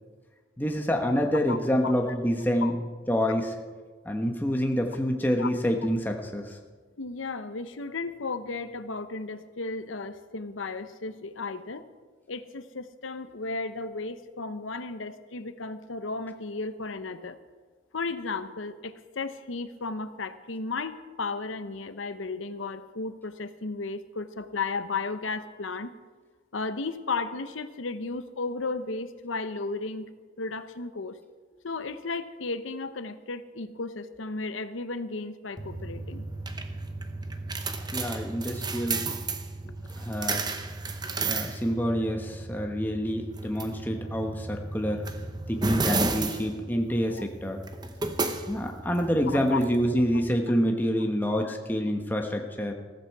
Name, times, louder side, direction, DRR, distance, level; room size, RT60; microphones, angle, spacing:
voice 1, 0.6-2.7 3.1-3.5 4.0-6.6 37.9-39.1 40.0-40.5 41.2-45.0 45.5-47.6 48.5-52.7, equal, 10° left, 2 dB, 1.1 m, -27 dB
voice 2, 7.0-11.8 12.3-17.4 17.9-25.9 26.5-30.1 30.4-31.2 31.6-36.2 47.1-47.2 49.5-49.6 50.1-50.2 51.4-51.5, left 3 dB, 85° left, 11 dB, 0.9 m, -34 dB
sound 1, 35.6-50.3, right 3 dB, 20° right, 0.9 m, -33 dB
15.0 x 14.5 x 4.7 m, 1.4 s
head